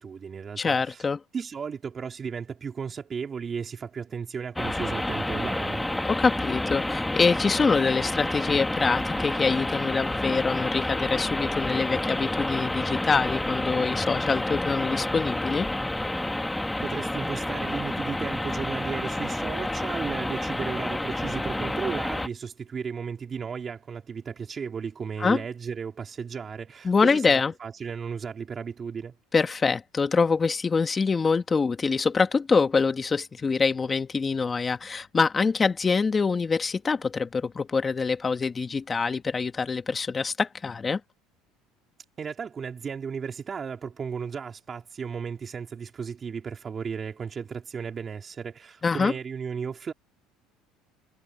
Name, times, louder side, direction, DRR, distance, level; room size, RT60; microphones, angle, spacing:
voice 1, 0.0-1.0 1.3-5.9 16.8-29.1 42.2-49.9, right 6 dB, 30° right, 3.7 m, -35 dB
voice 2, 0.6-1.2 6.1-15.7 25.2-25.4 26.8-27.5 29.3-41.0 48.8-49.1, left 4 dB, 25° left, 1.9 m, -25 dB
sound 1, 4.6-22.3, left 1 dB, 5° left, 1.9 m, -29 dB
supercardioid pair, 115°, 0 cm